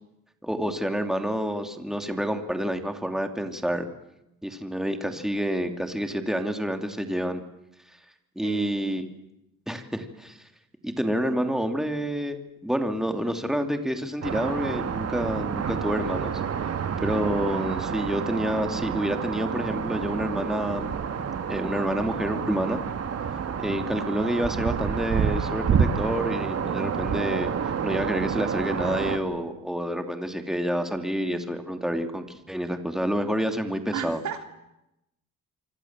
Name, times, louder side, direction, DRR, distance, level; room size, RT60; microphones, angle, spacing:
voice 1, 0.4-3.9 4.4-7.4 8.4-9.1 9.7-10.4 10.8-16.3 16.6-16.7 17.0-21.0 21.5-22.8 23.6-34.2, equal, ahead, 6 dB, 2.8 m, -28 dB
voice 2, 8.4-8.8 33.9-34.4, right 8 dB, 70° right, 6 dB, 3.1 m, -33 dB
sound 1, 14.2-29.2, right 7 dB, 55° right, 2.3 m, -29 dB
26.5 x 26.0 x 7.5 m, 0.88 s
cardioid pair, 90°, 30 cm